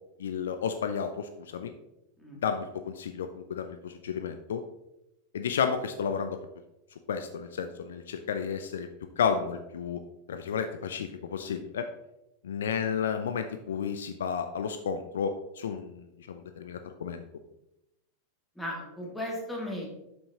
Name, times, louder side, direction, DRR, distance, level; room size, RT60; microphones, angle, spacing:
voice 1, 0.2-1.7 2.4-4.6 5.3-6.4 7.1-8.9 9.2-10.0 10.3-11.9 12.4-17.2, left 6 dB, 65° left, 8 dB, 0.5 m, -32 dB
voice 2, 18.6-19.9, left 1 dB, 5° left, -2 dB, 2.2 m, -36 dB
7.9 x 7.0 x 2.9 m, 0.87 s
figure-of-eight pair, 90°, 0 cm